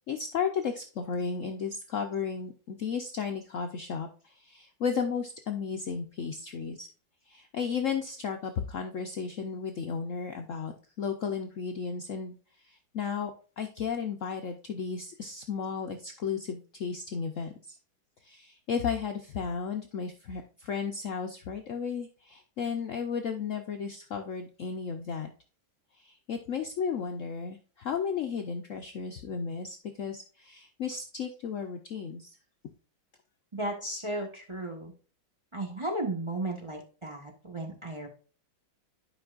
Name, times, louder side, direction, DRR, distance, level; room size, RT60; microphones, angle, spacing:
voice 1, 0.1-6.9 7.3-12.4 12.6-17.8 18.2-25.3 26.0-32.3, left 6 dB, 80° left, 4 dB, 0.7 m, -34 dB
voice 2, 33.5-34.9 35.5-38.1, right 2 dB, 20° right, 0 dB, 1.0 m, -35 dB
11.0 x 5.3 x 2.4 m, 0.38 s
omnidirectional pair, 2.2 m